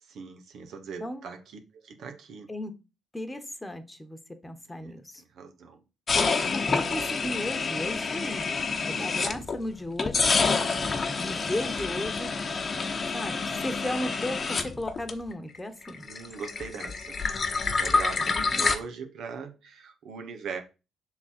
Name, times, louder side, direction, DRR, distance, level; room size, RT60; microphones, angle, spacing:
voice 1, 0.0-2.5 4.7-5.8 8.9-9.4 16.0-17.2 17.5-20.6, right 5 dB, 70° right, 1.0 m, -41 dB
voice 2, 3.1-5.2 6.5-8.5 8.8-10.4 11.2-12.3 13.1-16.1 18.1-18.7, left 1 dB, 15° left, 1.2 m, -35 dB
sound 1, 6.1-9.6 10.0-15.6 15.8-18.8, left 4 dB, 45° left, 1.0 m, -28 dB
5.7 x 3.9 x 4.4 m
hypercardioid pair, 50°, 0 cm